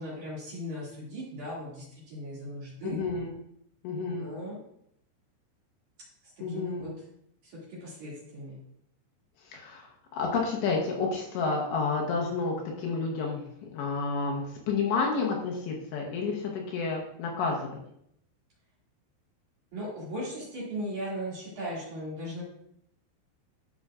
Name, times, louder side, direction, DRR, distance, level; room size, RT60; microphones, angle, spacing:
voice 1, 0.0-3.0 4.0-4.6 6.5-6.9 7.4-8.6 19.7-22.4, equal, 50° right, -6 dB, 3.1 m, -38 dB
voice 2, 2.8-3.3 3.8-4.3 6.4-6.9 9.4-13.4 13.7-17.8, left 4 dB, 75° left, 0 dB, 2.9 m, -30 dB
12.5 x 6.1 x 2.4 m, 0.73 s
omnidirectional pair, 5.6 m